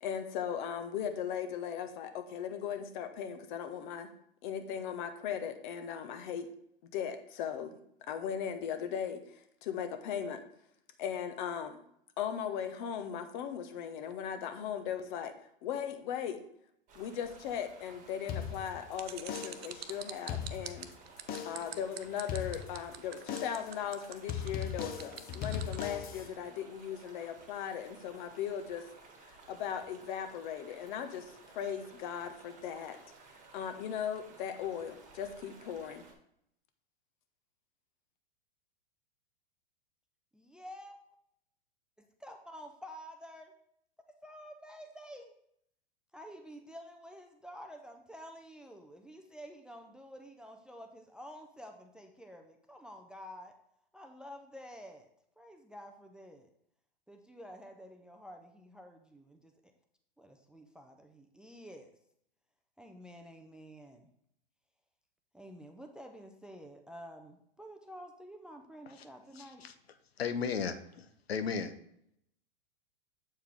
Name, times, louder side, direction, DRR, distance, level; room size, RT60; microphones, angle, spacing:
voice 1, 0.0-4.1 4.4-6.5 6.8-7.8 8.1-10.4 11.0-11.8 12.2-15.3 15.6-16.4 16.9-20.9 21.4-28.8 29.5-33.0 33.5-36.0, left 8 dB, 55° left, 8 dB, 1.0 m, -38 dB
sound 1, 16.9-36.1, right 4 dB, 25° right, 1.4 m, -56 dB
sound 2, 18.3-18.9 19.3-19.8 20.2-20.9 21.3-21.8 22.3-22.9 23.3-23.8 24.3-26.3, left 8 dB, 30° left, 0.7 m, -39 dB
sound 3, 19.0-25.9, right 10 dB, 85° right, 0.6 m, -45 dB
voice 2, 40.3-41.2 42.0-43.5 44.2-45.3 46.1-53.6 53.9-55.1 55.4-56.5 57.1-59.5 60.2-61.9 62.8-64.1 65.3-69.7, equal, 5° right, 4 dB, 0.4 m, -50 dB
voice 3, 69.4-69.7 70.2-71.7, left 6 dB, 85° left, 9 dB, 0.7 m, -35 dB
7.5 x 4.6 x 3.5 m, 0.73 s
hypercardioid pair, 110°, 30 cm